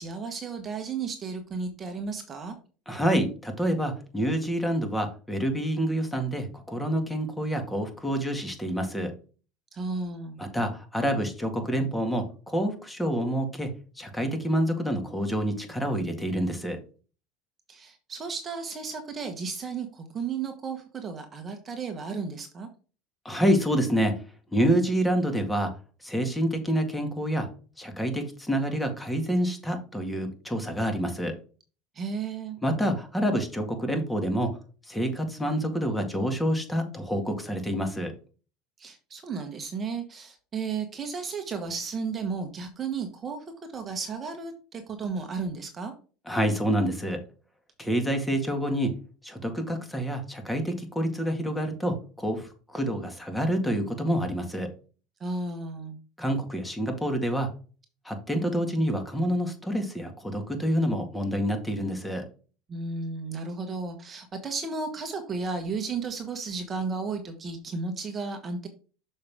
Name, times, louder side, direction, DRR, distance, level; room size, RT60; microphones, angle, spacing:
voice 1, 0.0-2.5 9.7-10.4 17.7-22.7 31.9-32.6 38.8-43.4 43.7-45.9 55.2-56.0 62.7-68.7, right 4 dB, 30° right, 6 dB, 1.2 m, -33 dB
voice 2, 2.9-9.1 10.4-13.7 14.0-16.8 23.3-24.2 24.5-25.7 26.0-27.5 27.8-31.3 32.6-34.5 34.9-38.1 46.3-47.2 47.8-49.0 49.2-54.7 56.2-57.5 58.1-62.3, equal, 5° left, 5 dB, 2.0 m, -27 dB
6.6 x 5.5 x 3.6 m, 0.37 s
supercardioid pair, 110°, 0 cm